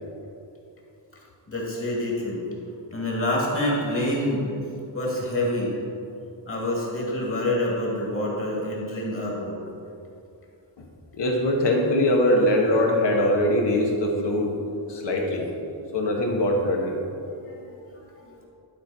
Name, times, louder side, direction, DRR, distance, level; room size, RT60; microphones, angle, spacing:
voice 1, 1.5-2.5 2.9-4.5 4.9-5.7 6.5-9.6 17.5-18.4, left 1 dB, 30° left, -3 dB, 2.0 m, -27 dB
voice 2, 11.1-14.5 14.9-15.5 15.9-17.0, left 1 dB, 65° left, 0 dB, 1.4 m, -22 dB
11.5 x 4.5 x 5.4 m, 2.6 s
wide cardioid pair, 165°, 46 cm